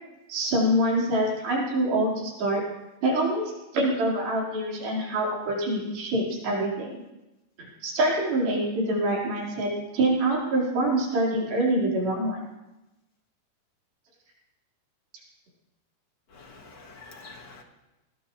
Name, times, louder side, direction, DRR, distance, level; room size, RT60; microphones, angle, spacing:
voice 1, 0.3-2.6 3.0-7.0 7.6-12.4, right 1 dB, 80° right, -5 dB, 6.4 m, -25 dB
voice 2, 16.3-17.6, left 3 dB, 40° left, 2 dB, 1.8 m, -47 dB
20.0 x 19.5 x 3.2 m, 1.0 s
omnidirectional pair, 4.2 m